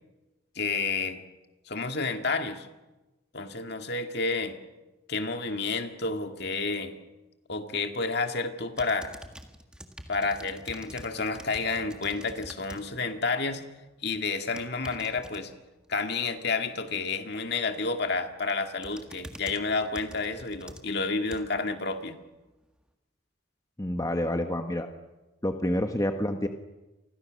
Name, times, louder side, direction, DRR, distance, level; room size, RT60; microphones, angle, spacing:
voice 1, 0.6-1.2 1.7-2.7 3.3-4.6 5.1-7.0 7.5-9.1 10.1-13.6 14.0-15.5 15.9-22.2, left 4 dB, 50° left, 6 dB, 2.1 m, -30 dB
sound 1, 8.7-12.8 13.2-13.6 14.4-15.4 17.8-18.1 18.5-21.7 22.2-22.3, equal, 5° right, 1.6 m, -46 dB
voice 2, 23.8-24.9 25.4-26.5, left 1 dB, 15° left, 5 dB, 1.2 m, -28 dB
30.0 x 25.0 x 6.4 m, 1.1 s
head